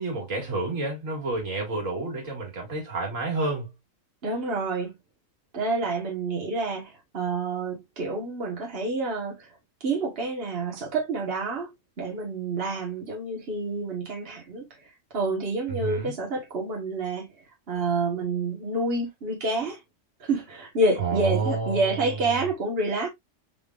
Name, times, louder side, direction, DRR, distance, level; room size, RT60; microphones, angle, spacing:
voice 1, 0.0-3.7 15.7-16.1 21.0-22.5, right 3 dB, 80° right, 2.5 m, -29 dB
voice 2, 4.2-4.9 5.5-9.5 9.8-11.7 12.0-14.6 15.1-17.3 17.7-19.8 20.3-23.1, right 2 dB, 50° right, 1.5 m, -28 dB
5.8 x 3.6 x 2.4 m
omnidirectional pair, 1.3 m